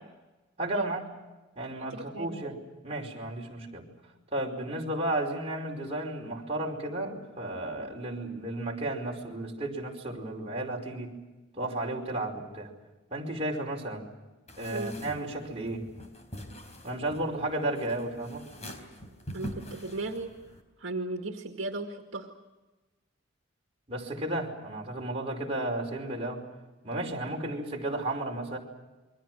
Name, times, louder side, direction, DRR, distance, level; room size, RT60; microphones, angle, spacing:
voice 1, 0.6-1.0 1.5-2.5 2.8-3.9 4.3-11.2 11.6-12.7 13.1-14.0 14.6-15.9 16.8-18.4 23.9-26.4 26.8-28.6, right 1 dB, 30° right, -1 dB, 5.1 m, -33 dB
voice 2, 1.9-2.5 14.7-15.0 19.3-20.3 20.8-22.3, right 2 dB, 70° right, 3 dB, 2.1 m, -36 dB
sound 1, 14.5-20.6, equal, 35° left, 4.0 m, -44 dB
28.5 x 23.5 x 6.3 m, 1.1 s
head